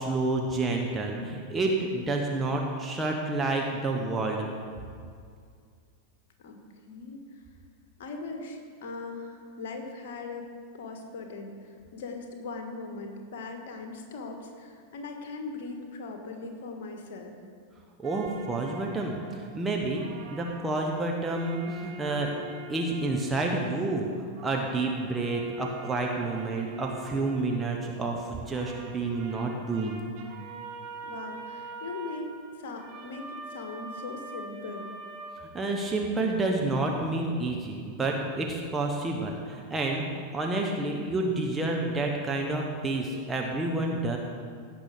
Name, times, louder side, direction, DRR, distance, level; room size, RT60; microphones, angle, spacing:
voice 1, 0.0-4.4 18.0-20.0 20.3-22.3 22.7-24.1 24.4-30.0 35.4-44.2, right 2 dB, 15° right, 0 dB, 1.2 m, -29 dB
voice 2, 6.9-7.4 8.0-10.5 10.7-17.3 31.0-34.9, left 3 dB, 55° left, 4 dB, 1.6 m, -40 dB
sound 1, 18.0-19.7 19.9-24.1 24.4-28.2 28.5-36.0, right 3 dB, 45° right, 1.8 m, -44 dB
16.5 x 6.0 x 5.1 m, 2.2 s
figure-of-eight pair, 90°, 0 cm